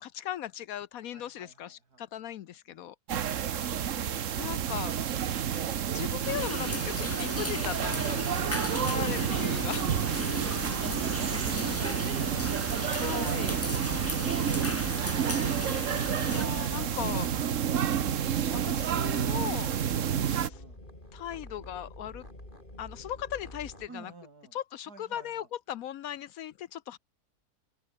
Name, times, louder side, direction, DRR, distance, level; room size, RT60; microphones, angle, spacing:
voice 1, 0.0-2.9 4.4-5.0 5.9-9.9 12.9-13.6 16.2-17.3 18.5-19.8 21.1-22.2 22.8-24.1 24.5-27.0, left 11 dB, 70° left, 1.0 m, -38 dB
voice 2, 1.1-2.9 7.4-7.5 10.2-12.6 20.1-20.8 23.9-24.6 24.9-25.5, right 3 dB, 70° right, 4.2 m, -47 dB
sound 1, 3.1-20.5, right 9 dB, 55° right, 1.3 m, -30 dB
sound 2, 6.2-16.5, left 2 dB, 10° left, 0.8 m, -37 dB
sound 3, 6.8-23.9, left 1 dB, 30° left, 6.6 m, -47 dB
omnidirectional pair, 1.7 m